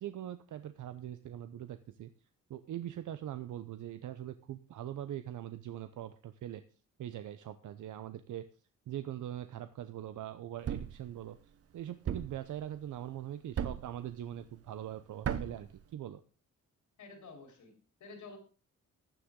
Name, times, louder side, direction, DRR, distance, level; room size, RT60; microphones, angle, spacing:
voice 1, 0.0-2.1 2.5-6.6 7.0-8.4 8.9-11.4 11.7-16.2, right 11 dB, 80° right, 10 dB, 0.8 m, -42 dB
Thump thud, 10.6-11.0 12.1-12.4 13.6-14.0 15.2-15.6, right 9 dB, 50° right, 0.9 m, -35 dB
voice 2, 17.0-18.4, left 4 dB, 75° left, 3 dB, 4.2 m, -51 dB
15.0 x 10.0 x 3.8 m, 0.36 s
wide cardioid pair, 150°, 30 cm